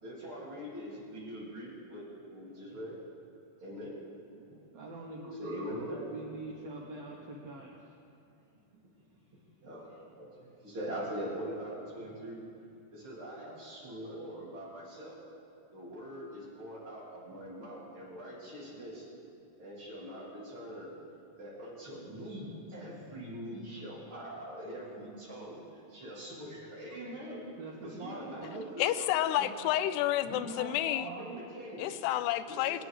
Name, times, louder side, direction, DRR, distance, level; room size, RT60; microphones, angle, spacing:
voice 1, 0.0-3.0 3.6-3.9 4.5-4.6 5.4-6.0 9.6-9.9 10.2-12.4 12.9-15.2 15.7-19.1 19.6-20.9 21.4-25.6 25.9-27.4 27.8-29.7 30.2-31.9 32.5-32.9, equal, 35° right, -6 dB, 3.5 m, -42 dB
voice 2, 4.7-5.7 6.0-7.8 24.4-24.6 27.6-29.1 31.0-31.4, right 2 dB, 80° right, -1 dB, 1.4 m, -44 dB
voice 3, 28.8-31.1 31.8-32.8, left 13 dB, 90° left, 14 dB, 2.6 m, -30 dB
24.0 x 9.3 x 4.9 m, 2.6 s
omnidirectional pair, 4.6 m